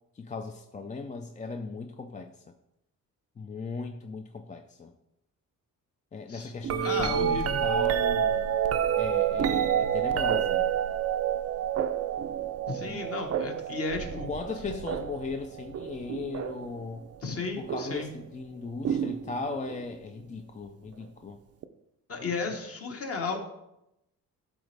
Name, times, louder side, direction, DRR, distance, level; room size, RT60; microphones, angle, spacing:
voice 1, 0.1-2.4 3.4-4.9 6.1-8.6 9.0-10.6 12.8-13.0 14.3-17.1 17.6-21.4, left 4 dB, 25° left, 5 dB, 0.4 m, -37 dB
sound 1, 6.6-16.8 17.7-18.1 18.8-19.8 21.6-21.7, right 9 dB, 45° right, 0.5 m, -29 dB
voice 2, 6.8-7.6 12.7-14.3 17.2-18.1 22.1-23.4, left 3 dB, 45° left, 2 dB, 1.3 m, -33 dB
12.0 x 4.0 x 3.4 m, 0.86 s
cardioid pair, 115°, 34 cm